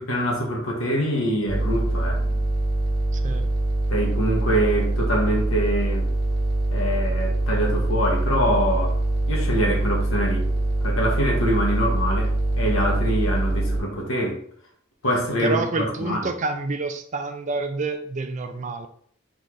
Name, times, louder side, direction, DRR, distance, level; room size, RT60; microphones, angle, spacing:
voice 1, 0.0-2.2 3.9-6.1 6.7-9.0 9.3-10.5 10.8-12.3 12.6-14.4 15.0-16.3, equal, 80° left, -1 dB, 1.3 m, -24 dB
sound 1, 1.5-13.8, right 2 dB, 50° right, 1.3 m, -23 dB
voice 2, 3.1-3.5 15.4-18.9, right 3 dB, 35° right, 7 dB, 0.4 m, -28 dB
3.9 x 3.7 x 3.2 m, 0.63 s
head